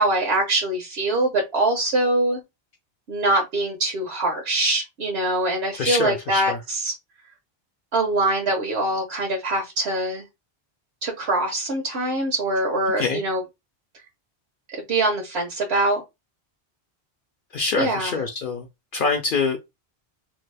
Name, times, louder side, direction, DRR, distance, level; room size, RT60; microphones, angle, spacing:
voice 1, 0.0-2.4 3.1-6.9 7.9-10.2 11.0-13.4 14.9-16.0 17.8-18.1, right 2 dB, 85° right, 1.1 m, -23 dB
voice 2, 5.7-6.6 13.0-13.2 17.5-18.7 18.9-19.6, left 4 dB, 60° left, 0.6 m, -25 dB
2.8 x 2.3 x 3.3 m
omnidirectional pair, 1.1 m